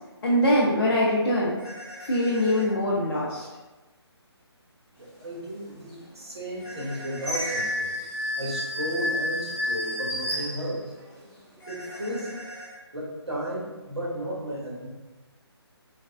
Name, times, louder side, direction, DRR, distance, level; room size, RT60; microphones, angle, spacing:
voice 1, 0.2-1.5 2.0-3.5, left 1 dB, 55° left, -6 dB, 0.6 m, -23 dB
sound 1, 1.6-2.7 6.6-7.7 11.6-12.8, equal, 30° left, 1.1 m, -42 dB
voice 2, 5.0-7.9 8.4-10.8 11.7-12.3 12.9-14.9, equal, 70° right, -5 dB, 1.2 m, -34 dB
sound 2, 5.8-5.9 6.5-11.2 11.7-12.4, left 1 dB, 15° right, 0.9 m, -31 dB
3.3 x 2.2 x 2.2 m, 1.2 s
figure-of-eight pair, 145°, 14 cm